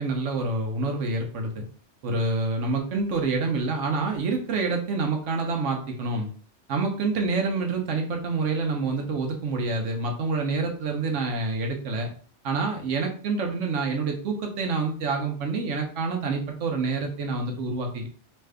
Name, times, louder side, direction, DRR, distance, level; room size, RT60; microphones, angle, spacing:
voice 1, 0.0-1.6 2.0-6.3 6.7-12.1 12.4-18.1, right 3 dB, 75° right, 3 dB, 1.1 m, -27 dB
4.9 x 3.2 x 2.2 m, 0.41 s
omnidirectional pair, 1.2 m